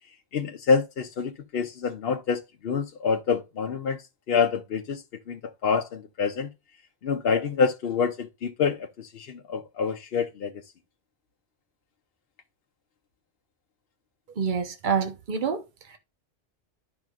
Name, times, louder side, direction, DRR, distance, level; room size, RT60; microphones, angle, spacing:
voice 1, 0.3-4.0 4.3-6.5 7.0-10.6, left 5 dB, 65° left, 0.9 m, -27 dB
voice 2, 14.4-16.0, right 6 dB, 45° right, 1.1 m, -28 dB
12.0 x 4.9 x 2.4 m
omnidirectional pair, 1.1 m